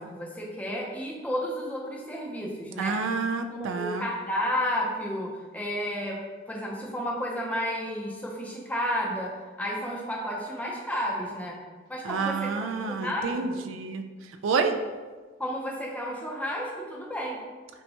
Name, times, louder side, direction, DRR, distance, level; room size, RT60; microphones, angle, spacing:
voice 1, 0.0-3.2 3.6-6.2 6.5-11.6 11.9-13.7 15.4-17.4, equal, 5° left, -2 dB, 0.5 m, -32 dB
voice 2, 2.8-4.1 12.0-14.0 14.4-14.8, right 4 dB, 80° right, 7 dB, 0.3 m, -28 dB
5.4 x 2.2 x 2.8 m, 1.4 s
head